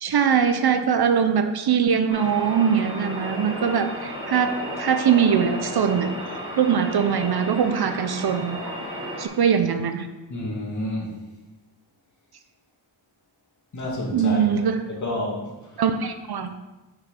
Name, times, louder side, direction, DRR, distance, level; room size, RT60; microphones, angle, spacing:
voice 1, 0.0-6.1 6.6-8.6 9.2-10.1 14.1-14.9 15.8-16.5, right 7 dB, 55° right, 8 dB, 0.7 m, -22 dB
sound 1, 2.1-9.3, equal, 10° right, 2.6 m, -33 dB
voice 2, 10.3-11.1 13.7-14.5 15.0-15.4, left 1 dB, 40° left, -3 dB, 2.3 m, -29 dB
6.5 x 6.1 x 5.7 m, 1.1 s
wide cardioid pair, 130°, 45 cm